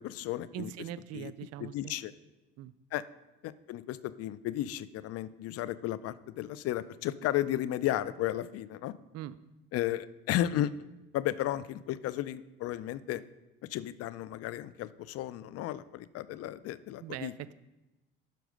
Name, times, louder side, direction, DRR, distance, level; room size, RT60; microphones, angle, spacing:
voice 1, 0.0-0.7 1.1-1.3 1.6-2.1 2.9-3.0 3.4-8.9 9.7-10.7 11.1-13.2 13.7-17.3, left 13 dB, 55° left, 16 dB, 0.5 m, -34 dB
voice 2, 0.5-1.9 2.6-2.7 9.1-9.4 17.0-17.5, right 12 dB, 60° right, 16 dB, 0.5 m, -41 dB
12.0 x 4.6 x 5.2 m, 1.0 s
hypercardioid pair, 60°, 29 cm